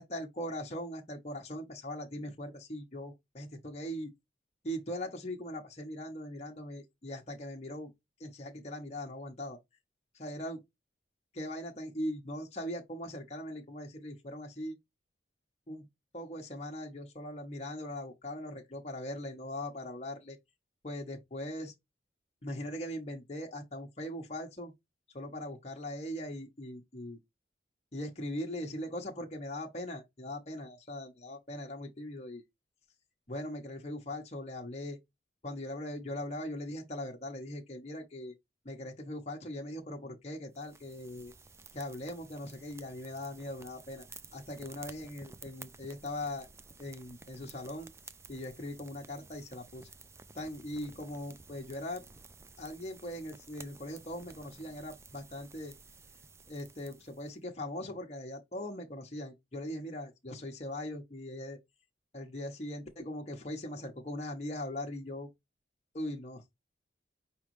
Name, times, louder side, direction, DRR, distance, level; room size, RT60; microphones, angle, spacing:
voice 1, 0.0-4.1 4.6-7.9 8.2-9.6 10.1-10.6 11.3-14.8 15.7-15.9 16.1-20.4 20.8-21.7 22.4-24.7 25.1-27.2 27.9-32.4 33.3-35.0 35.4-38.3 38.6-41.3 41.7-44.0 44.3-46.5 46.8-47.9 48.3-49.9 50.3-52.0 52.6-55.7 56.5-61.6 62.1-65.3 65.9-66.4, left 1 dB, 35° left, 1.0 m, -40 dB
sound 1, 40.5-57.3, right 4 dB, 15° right, 0.3 m, -54 dB
5.2 x 3.3 x 3.1 m
head